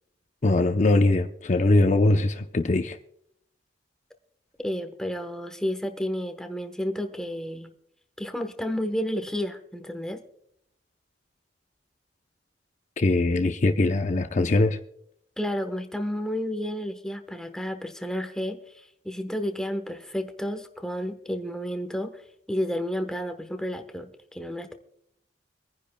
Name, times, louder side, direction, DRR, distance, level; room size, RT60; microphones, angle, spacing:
voice 1, 0.4-3.0 13.0-14.8, left 2 dB, 40° left, 0.6 m, -21 dB
voice 2, 4.6-7.7 8.2-10.2 15.4-24.7, equal, 5° left, 1.0 m, -31 dB
24.5 x 10.0 x 2.2 m
head